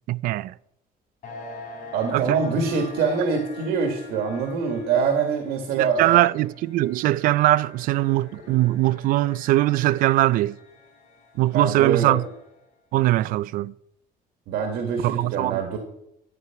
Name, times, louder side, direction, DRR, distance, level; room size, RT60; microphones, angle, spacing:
voice 1, 0.1-0.5 2.1-2.4 5.8-10.6 11.4-12.3 12.9-13.7 15.0-15.6, right 16 dB, 60° right, 0.4 m, -21 dB
sound 1, 1.2-12.6, left 2 dB, 50° left, 4.1 m, -45 dB
voice 2, 1.9-6.2 11.5-12.2 14.5-15.8, right 5 dB, 85° right, 1.9 m, -24 dB
12.5 x 9.3 x 5.8 m
cardioid pair, 175°, 16 cm